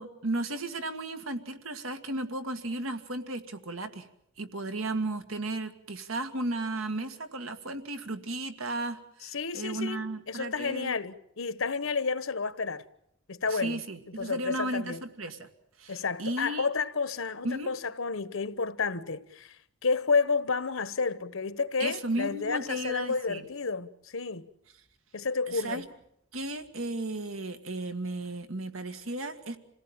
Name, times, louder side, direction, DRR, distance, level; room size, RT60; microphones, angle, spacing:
voice 1, 0.0-4.1 4.4-11.0 13.5-15.5 15.8-16.7 17.4-17.7 21.8-23.5 25.5-25.9 26.3-29.6, right 2 dB, 85° right, 1.9 m, -34 dB
voice 2, 9.3-12.8 13.3-13.8 14.2-15.0 15.9-19.6 19.8-24.5 25.1-25.8, left 4 dB, 75° left, 1.1 m, -31 dB
27.5 x 17.5 x 8.8 m
head